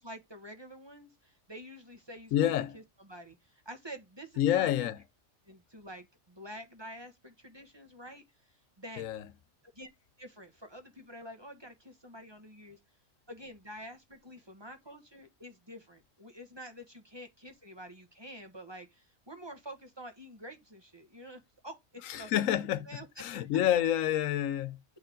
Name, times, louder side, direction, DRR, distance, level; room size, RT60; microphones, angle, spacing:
voice 1, 0.0-4.9 5.4-9.1 9.7-9.9 10.2-12.8 13.3-23.1 23.6-23.7, equal, 20° right, 1.3 m, -48 dB
voice 2, 2.3-2.7 4.4-5.0 9.0-9.2 22.1-22.9 23.2-24.8, left 11 dB, 85° left, 1.0 m, -28 dB
8.9 x 4.3 x 3.9 m
omnidirectional pair, 1.3 m